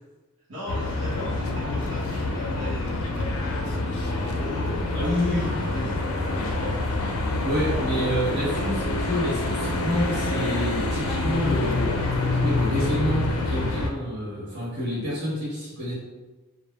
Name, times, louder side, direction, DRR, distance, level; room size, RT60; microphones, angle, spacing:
voice 1, 0.5-5.0 5.5-7.2, left 2 dB, 80° right, -10 dB, 0.8 m, -39 dB
sound 1, 0.7-13.9, left 2 dB, 80° left, 0.4 m, -27 dB
voice 2, 4.9-5.9 7.4-15.9, equal, 55° right, -8 dB, 1.3 m, -28 dB
3.3 x 2.0 x 2.2 m, 1.2 s
head